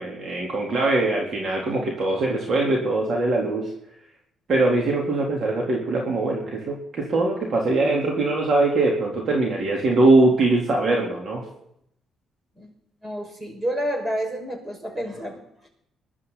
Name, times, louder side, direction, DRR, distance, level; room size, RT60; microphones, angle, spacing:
voice 1, 0.0-3.7 4.5-11.4, right 2 dB, 55° right, -1 dB, 3.8 m, -22 dB
voice 2, 13.0-15.4, equal, 25° right, 3 dB, 5.9 m, -29 dB
22.5 x 12.0 x 4.2 m, 0.73 s
cardioid pair, 90°, 0 cm